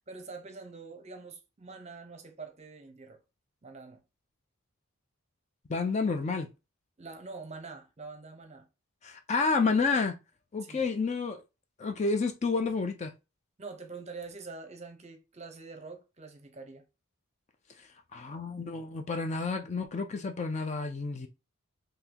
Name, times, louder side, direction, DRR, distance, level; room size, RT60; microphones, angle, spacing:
voice 1, 0.1-3.2 3.6-4.0 7.0-8.7 10.6-10.9 13.6-16.8, right 4 dB, 30° right, 0.7 m, -45 dB
voice 2, 5.7-6.5 9.0-10.1 10.5-11.4 11.8-13.1 18.1-21.3, left 4 dB, 30° left, 0.4 m, -30 dB
3.8 x 2.7 x 2.8 m
head